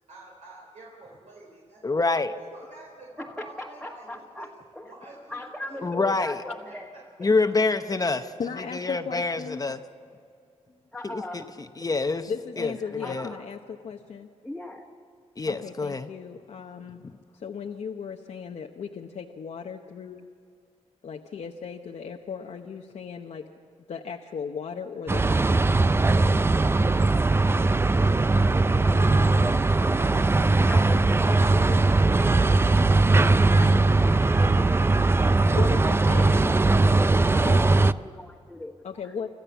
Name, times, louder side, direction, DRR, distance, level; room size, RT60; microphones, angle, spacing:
voice 1, 0.1-1.8 2.3-4.1 4.4-6.1 6.6-7.0, right 2 dB, 85° right, -4 dB, 4.1 m, -48 dB
voice 2, 1.8-2.3 5.8-6.4 7.2-8.3 8.7-9.8 11.0-11.4 11.8-12.3 12.6-13.3 15.4-16.1 17.0-17.1, left 3 dB, 30° left, 8 dB, 0.8 m, -26 dB
voice 3, 3.2-4.9 5.3-6.9 7.2-7.3 10.9-11.5 12.5-13.4 14.4-14.9 28.4-36.7 37.3-39.1, left 1 dB, ahead, -2 dB, 1.6 m, -40 dB
voice 4, 8.4-9.6 12.3-14.3 15.5-17.0 17.3-20.3 21.0-23.5 23.9-25.8 35.5-36.6 37.4-37.6 38.8-39.3, left 6 dB, 70° left, 2 dB, 0.9 m, -36 dB
sound 1, 25.1-37.9, right 3 dB, 20° right, 0.4 m, -20 dB
26.5 x 14.0 x 7.1 m, 2.4 s
wide cardioid pair, 100°, 12 cm